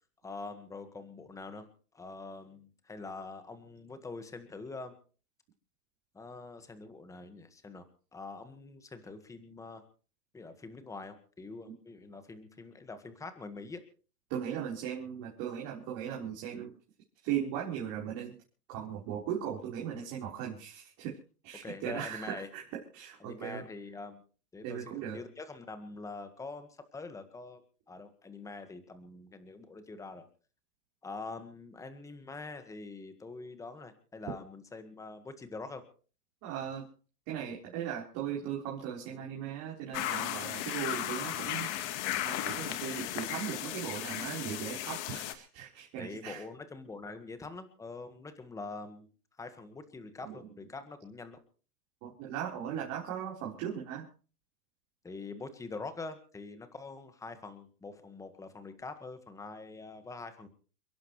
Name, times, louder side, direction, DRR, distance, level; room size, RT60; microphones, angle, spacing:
voice 1, 0.2-1.7 1.9-4.9 6.1-7.9 8.1-9.8 10.3-13.8 21.5-22.5 23.2-24.2 24.5-30.3 31.0-35.8 46.0-49.1 49.4-51.4 55.0-60.5, left 3 dB, 5° left, 9 dB, 1.6 m, -44 dB
voice 2, 14.3-16.7 17.2-18.3 18.7-21.2 21.4-23.6 24.6-25.2 36.4-36.8 37.3-41.7 42.2-46.4 50.2-50.4 52.0-54.0, right 9 dB, 35° right, -3 dB, 4.3 m, -38 dB
sound 1, 39.9-45.3, left 12 dB, 45° left, 1.9 m, -35 dB
30.0 x 11.5 x 3.2 m, 0.40 s
hypercardioid pair, 145°, 49 cm